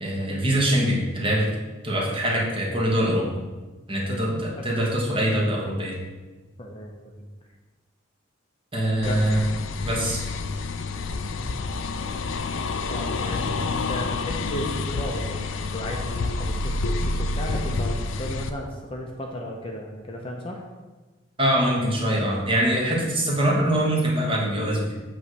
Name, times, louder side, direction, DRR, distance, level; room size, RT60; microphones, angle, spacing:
voice 1, 0.0-1.5 1.8-3.3 3.9-6.0 8.7-9.4 9.8-10.2 21.4-24.9, right 1 dB, 25° right, -3 dB, 1.4 m, -23 dB
voice 2, 6.6-7.3 9.0-9.3 11.4-11.6 12.9-20.6, equal, 25° left, 0 dB, 0.7 m, -35 dB
sound 1, 9.0-18.5, left 3 dB, 65° left, 0.4 m, -28 dB
8.4 x 3.2 x 6.5 m, 1.2 s
head